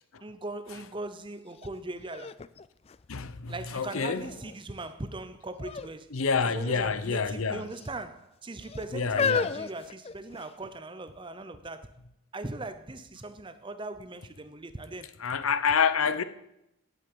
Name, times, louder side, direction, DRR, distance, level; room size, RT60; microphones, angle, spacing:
voice 1, 0.2-2.4 3.5-6.1 6.4-11.9 12.3-15.1, right 2 dB, 25° right, 0.7 m, -39 dB
sound 1, 1.6-1.7 2.1-3.6 4.2-4.7 5.6-5.9 6.2-6.4 7.2-7.9 8.6-10.6 11.4-11.5, left 5 dB, 30° left, 0.3 m, -33 dB
voice 2, 3.1-4.3 6.1-7.7 8.9-9.5 15.2-16.2, left 5 dB, 80° left, 0.8 m, -27 dB
9.0 x 8.4 x 8.6 m
head